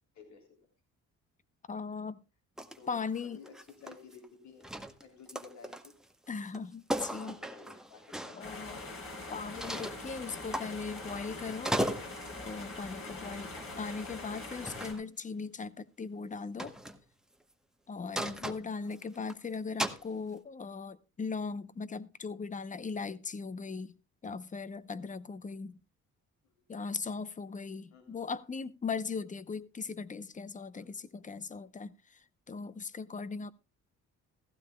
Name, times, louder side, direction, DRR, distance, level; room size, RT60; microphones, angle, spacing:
voice 1, 0.1-0.6 2.8-4.7 5.0-5.9 7.2-8.4 14.2-14.5 18.8-19.1 26.4-26.5 27.9-28.2 30.7-30.9, left 5 dB, 65° left, 3.3 m, -54 dB
voice 2, 1.7-2.2 2.9-3.4 6.3-7.4 8.2-8.9 9.3-11.7 12.4-16.7 17.9-23.9 24.2-25.8 26.7-33.5, left 4 dB, 25° left, 0.7 m, -39 dB
sound 1, 2.6-2.8 3.1-4.3 4.6-6.1 6.5-6.6 6.9-8.4 9.6-10.0 10.5-11.2 11.5-12.4 13.6-13.8 14.5-15.0 16.6-17.0 18.2-19.3 19.8-20.1, right 1 dB, ahead, 1.0 m, -37 dB
sound 2, 8.4-14.9, left 2 dB, 45° left, 4.2 m, -43 dB
15.5 x 15.0 x 2.3 m
cardioid pair, 90°, 30 cm